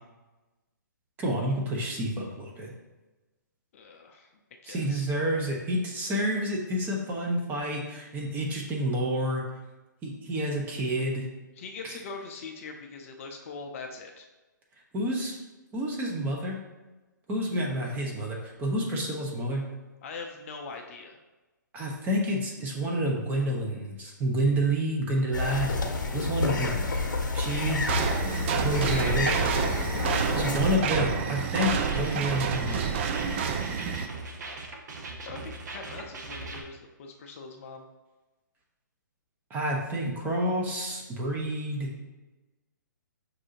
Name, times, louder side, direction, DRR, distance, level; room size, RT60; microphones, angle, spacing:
voice 1, 1.2-2.7 4.7-9.4 10.0-11.3 11.8-11.9 14.9-15.3 15.7-16.6 17.3-19.7 21.7-25.7 26.1-27.0 27.3-27.8 28.6-29.3 30.3-32.8 39.5-41.9, equal, 15° right, -1 dB, 0.7 m, -29 dB
voice 2, 3.7-4.3 4.6-5.1 11.6-14.3 20.0-21.2 28.9-29.4 35.2-37.8, left 4 dB, 40° left, 3 dB, 0.5 m, -41 dB
sound 1, 25.3-30.8, left 3 dB, 70° left, 0.8 m, -29 dB
sound 2, 27.9-34.1, right 6 dB, 35° right, 0.4 m, -28 dB
sound 3, 31.6-36.6, right 2 dB, 60° right, 0.7 m, -40 dB
6.0 x 2.7 x 2.8 m, 1.1 s
figure-of-eight pair, 135°, 11 cm